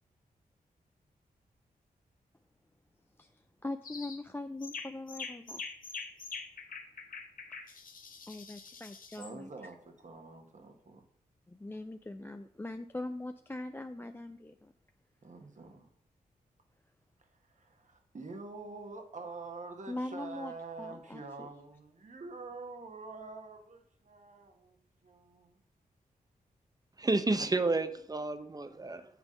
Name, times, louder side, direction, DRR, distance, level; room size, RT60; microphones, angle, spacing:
voice 1, 3.6-5.6 8.3-9.5 11.5-14.7 19.9-20.5 20.8-21.5, left 2 dB, 15° left, 8 dB, 0.4 m, -41 dB
sound 1, 3.8-4.2 4.6-9.3, left 4 dB, 60° left, 1.0 m, -44 dB
voice 2, 9.2-11.0 15.2-15.9 17.2-24.8 25.0-25.6 27.3-27.9, right 3 dB, 50° right, 4 dB, 1.4 m, -46 dB
voice 3, 27.0-29.1, right 3 dB, 25° right, 10 dB, 0.8 m, -30 dB
8.2 x 3.5 x 6.5 m, 0.63 s
cardioid pair, 50°, 16 cm